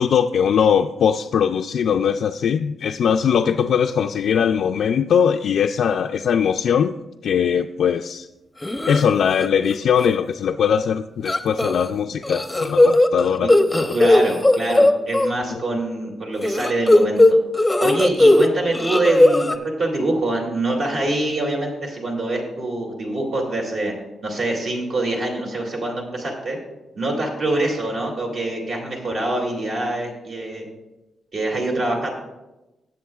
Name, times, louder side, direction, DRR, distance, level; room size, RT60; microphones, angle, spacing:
voice 1, 0.0-6.9 7.2-8.3 8.9-13.5 15.5-15.6, left 7 dB, 70° left, 4 dB, 0.3 m, -20 dB
sound 1, 8.6-9.0 9.4-9.7 10.0-10.1 11.3-11.9 12.2-15.3 16.4-18.5 18.7-19.5, left 1 dB, 10° left, 0.6 m, -16 dB
voice 2, 13.9-17.4 17.8-23.9 24.2-26.6 27.0-30.7 31.3-32.1, right 2 dB, 60° right, -1 dB, 2.4 m, -25 dB
18.5 x 7.4 x 2.4 m, 1.0 s
cardioid pair, 115°, 0 cm